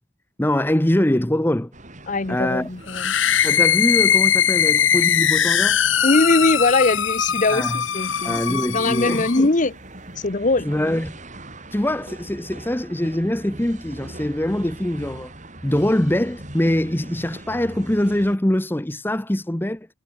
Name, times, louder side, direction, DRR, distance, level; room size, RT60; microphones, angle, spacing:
voice 1, 0.4-1.7 2.3-2.7 3.4-5.8 7.5-7.8 8.2-9.5 10.6-11.2 11.7-15.3 15.6-19.9, left 1 dB, 10° left, 0.8 m, -23 dB
sound 1, 1.7-18.4, right 1 dB, 40° right, 7.0 m, -41 dB
voice 2, 2.1-3.2 6.0-9.7 10.2-10.7, left 2 dB, 40° left, 1.0 m, -21 dB
sound 2, 2.9-9.4, left 9 dB, 75° left, 1.7 m, -20 dB
head